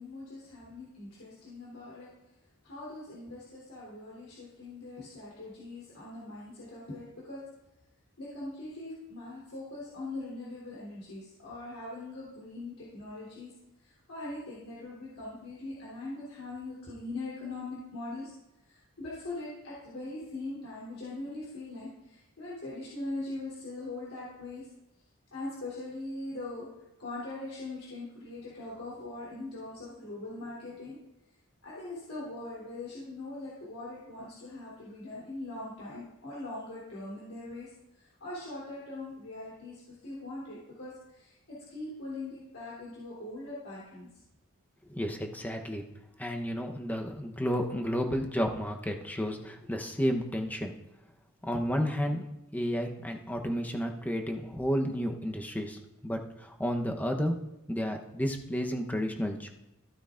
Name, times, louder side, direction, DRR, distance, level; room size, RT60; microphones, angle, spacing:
voice 1, 0.0-2.1 2.6-7.4 8.2-13.5 13.8-18.3 18.6-24.7 25.3-26.7 27.0-31.0 31.6-37.7 38.0-44.1, left 2 dB, 70° left, -8 dB, 3.4 m, -41 dB
voice 2, 44.9-45.8 46.2-50.7 51.4-52.3 52.5-57.3 57.7-59.5, equal, 10° left, 3 dB, 0.9 m, -32 dB
15.0 x 9.0 x 2.5 m, 0.89 s
head